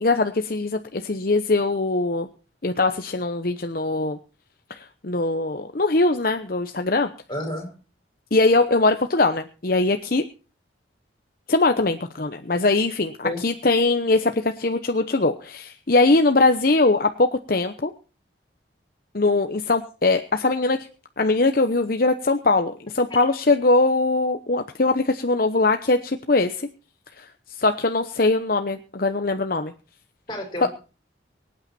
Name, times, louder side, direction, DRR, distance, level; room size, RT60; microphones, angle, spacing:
voice 1, 0.0-2.3 2.6-4.2 4.7-7.1 8.3-10.2 11.5-17.9 19.1-20.9 21.2-26.7 27.2-27.3 27.6-29.7 30.6-30.7, left 3 dB, 50° left, 7 dB, 0.9 m, -21 dB
voice 2, 7.3-7.8 13.2-13.4 23.1-23.2 30.3-30.7, left 1 dB, 25° left, 3 dB, 5.3 m, -30 dB
24.0 x 9.0 x 4.3 m, 0.35 s
head